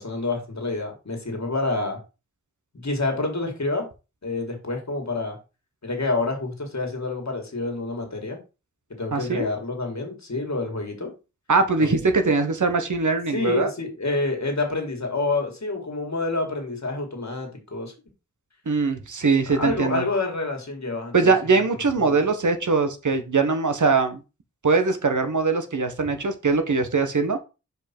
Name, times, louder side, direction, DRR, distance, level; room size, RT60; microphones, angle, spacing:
voice 1, 0.0-2.0 2.7-3.9 4.2-5.4 5.8-8.4 8.9-11.1 11.8-12.0 13.3-17.9 19.5-21.3 22.0-22.2, left 3 dB, 65° left, 2 dB, 2.0 m, -28 dB
voice 2, 9.1-9.5 11.5-13.7 18.7-20.0 21.1-24.2 24.6-27.4, right 4 dB, 85° right, 8 dB, 1.1 m, -22 dB
5.3 x 4.7 x 4.4 m, 0.30 s
wide cardioid pair, 70°, 30 cm